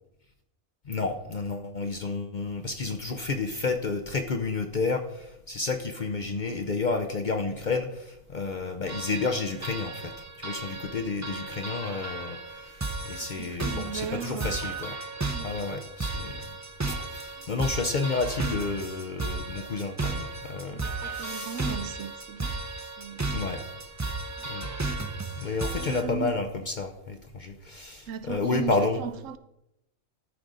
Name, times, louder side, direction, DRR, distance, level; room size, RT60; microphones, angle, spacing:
voice 1, 0.9-10.1 10.4-12.8 13.1-15.0 15.4-16.4 16.9-21.7 23.3-23.6 24.4-24.7 25.4-29.0, left 4 dB, 50° left, 0.6 m, -31 dB
sound 1, 8.9-26.0, right 3 dB, 20° right, 0.5 m, -34 dB
voice 2, 13.2-14.6 15.3-15.5 17.4-17.8 20.7-22.6 23.0-23.5 24.4-24.5 25.6-26.4 28.1-29.4, right 7 dB, 75° right, 1.0 m, -37 dB
13.0 x 5.0 x 3.9 m
omnidirectional pair, 1.4 m